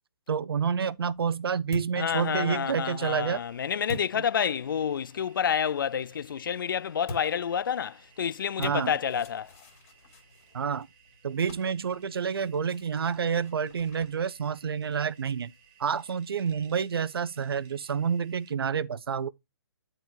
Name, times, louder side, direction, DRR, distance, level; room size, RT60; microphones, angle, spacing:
voice 1, 0.3-3.4 8.6-8.9 10.5-10.9 11.2-15.5 15.8-19.3, right 6 dB, 70° right, 0.7 m, -29 dB
sound 1, 0.6-5.0 7.0-15.9, left 2 dB, 30° left, 3.1 m, -47 dB
voice 2, 2.0-9.5, left 8 dB, 55° left, 0.4 m, -29 dB
sound 2, 3.1-18.5, right 7 dB, 20° right, 1.4 m, -60 dB
10.5 x 4.5 x 3.9 m
hypercardioid pair, 170°, 13 cm